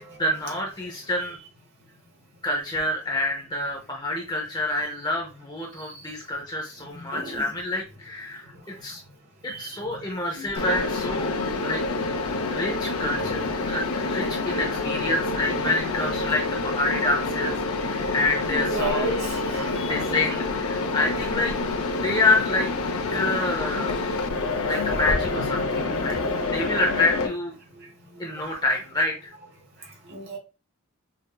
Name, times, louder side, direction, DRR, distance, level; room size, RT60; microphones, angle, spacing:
voice 1, 0.0-1.4 2.4-8.5 8.8-9.0 9.4-11.4 11.6-11.8 12.5-13.4 13.7-19.2 19.5-21.5 21.9-22.7 23.1-24.0 24.6-26.2 26.5-27.5 28.2-29.3, left 2 dB, 20° left, 0 dB, 0.7 m, -27 dB
voice 2, 6.9-7.4 9.5-9.7 10.3-10.4 14.2-14.3 15.0-15.1 18.4-19.9 23.8-23.9 24.3-25.0 25.3-26.5 30.1-30.4, right 1 dB, 45° right, 0 dB, 1.4 m, -34 dB
Mechanisms, 10.6-27.3, left 3 dB, 75° left, 0.7 m, -27 dB
5.6 x 2.6 x 2.3 m, 0.31 s
head